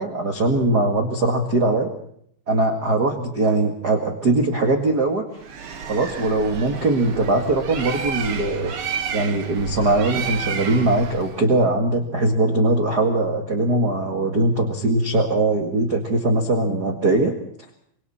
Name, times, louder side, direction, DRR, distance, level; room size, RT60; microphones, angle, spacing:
voice 1, 0.0-1.9 2.5-5.3 5.9-17.4, right 2 dB, 55° right, 4 dB, 1.1 m, -21 dB
Bird, 5.4-11.4, right 6 dB, 70° right, 1.2 m, -31 dB
26.5 x 25.0 x 4.3 m, 0.66 s
omnidirectional pair, 5.3 m